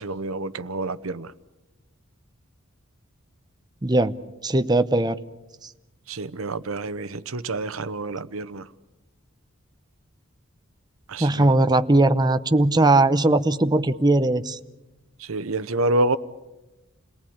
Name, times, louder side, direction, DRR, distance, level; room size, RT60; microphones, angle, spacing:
voice 1, 0.0-1.3 6.1-8.7 11.1-11.5 15.2-16.2, right 2 dB, 80° right, 0.9 m, -28 dB
voice 2, 3.8-4.1 4.4-5.2 5.6-5.7 11.2-14.6, right 2 dB, 20° right, 0.8 m, -19 dB
28.0 x 19.0 x 8.7 m
head